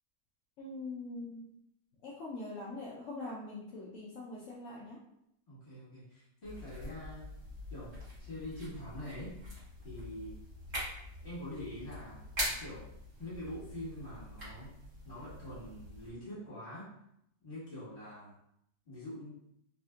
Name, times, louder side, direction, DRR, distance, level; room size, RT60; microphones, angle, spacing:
voice 1, 0.6-1.5 2.0-5.0, left 2 dB, 65° left, -6 dB, 0.8 m, -43 dB
voice 2, 5.5-7.3 7.7-9.4 9.8-10.4 11.2-12.9 13.2-14.7 15.0-16.9 17.4-18.3 18.9-19.3, left 1 dB, 35° left, -9 dB, 1.8 m, -45 dB
sound 1, 6.4-16.1, equal, 50° right, 1.6 m, -43 dB
3.6 x 2.5 x 2.3 m, 0.76 s
omnidirectional pair, 1.8 m